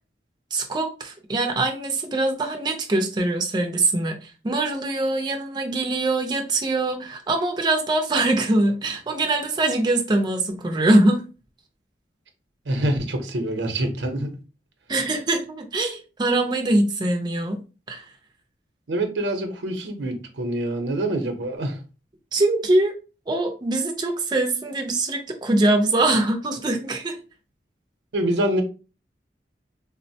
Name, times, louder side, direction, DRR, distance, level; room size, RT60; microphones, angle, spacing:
voice 1, 0.5-11.2 14.9-17.6 17.9-18.0 22.3-22.9 23.3-27.2, right 2 dB, 25° right, 0.4 m, -23 dB
voice 2, 12.7-14.3 18.9-21.8 28.1-28.6, right 1 dB, 90° right, 0.7 m, -25 dB
3.6 x 2.1 x 2.7 m
head